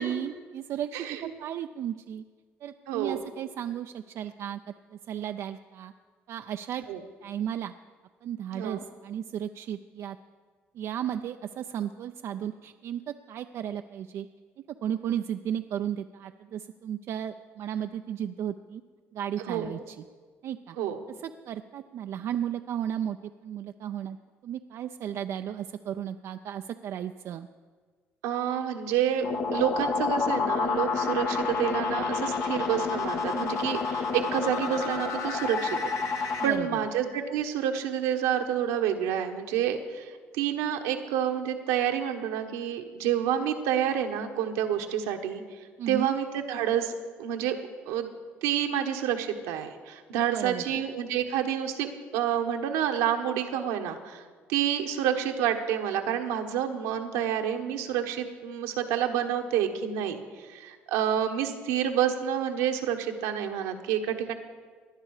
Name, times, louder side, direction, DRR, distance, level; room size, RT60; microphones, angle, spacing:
voice 1, 0.0-2.2 2.6-4.6 4.9-5.9 6.3-6.8 7.2-7.7 8.2-10.2 10.7-14.3 14.8-18.8 19.1-20.0 20.4-20.8 21.1-24.2 24.4-27.5 36.4-36.8 45.8-46.1 50.3-50.6, right 10 dB, 60° right, 7 dB, 0.5 m, -34 dB
voice 2, 2.9-3.2 6.9-7.0 8.5-8.8 19.4-19.7 20.8-21.0 28.2-29.2 29.5-35.8 36.2-45.4 45.9-46.9 47.2-47.6 47.9-48.1 48.4-54.2 54.5-60.2 60.5-64.3, right 9 dB, 85° right, 4 dB, 1.3 m, -28 dB
sound 1, 29.2-36.5, left 5 dB, 65° left, 1.4 m, -29 dB
18.5 x 10.5 x 4.9 m, 1.5 s
supercardioid pair, 70°, 5 cm